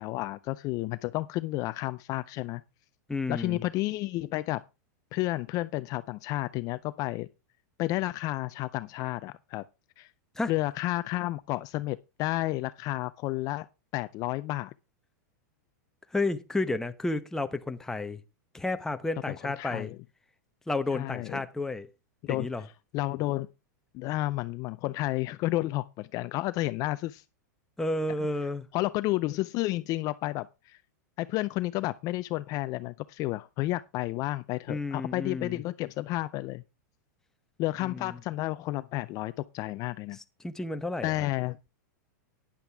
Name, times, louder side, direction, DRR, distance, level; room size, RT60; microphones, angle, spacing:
voice 1, 0.0-2.6 3.3-4.6 5.1-7.3 7.8-9.6 10.0-10.1 10.5-13.7 13.9-14.7 19.6-20.0 20.9-21.4 22.2-22.5 22.9-23.5 23.9-27.2 28.7-30.8 31.2-36.6 37.6-40.2 41.0-41.6, left 18 dB, 35° left, 0.5 m, -31 dB
voice 2, 3.1-3.6 10.4-10.5 16.1-18.2 18.5-19.9 20.7-21.9 22.3-22.6 27.8-28.7 34.7-35.6 37.8-38.2 40.4-41.1, left 2 dB, 5° left, 0.9 m, -31 dB
12.0 x 9.9 x 3.5 m
hypercardioid pair, 135°, 10 cm